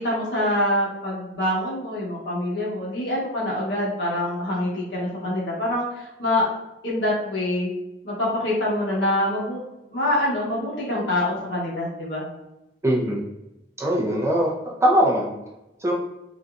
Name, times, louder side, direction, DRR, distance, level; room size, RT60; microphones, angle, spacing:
voice 1, 0.0-6.5 6.8-7.7 8.0-9.6 9.9-12.3, left 1 dB, 70° left, -5 dB, 1.2 m, -25 dB
voice 2, 12.8-13.2 13.8-15.3 15.8-15.9, equal, 15° right, -2 dB, 0.5 m, -21 dB
3.9 x 2.3 x 2.4 m, 0.92 s
head